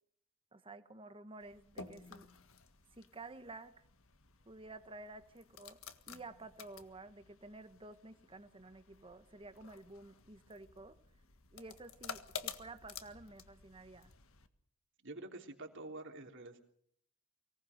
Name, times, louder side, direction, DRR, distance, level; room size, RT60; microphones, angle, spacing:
voice 1, 0.5-2.3 2.9-3.7 4.5-5.8 6.1-10.9 11.5-14.1, right 2 dB, 25° right, 10 dB, 1.3 m, -52 dB
sound 1, 1.4-14.5, left 6 dB, 65° left, 1.7 m, -52 dB
voice 2, 15.0-16.6, right 2 dB, 60° right, 4 dB, 3.5 m, -47 dB
24.5 x 18.5 x 6.7 m, 0.64 s
head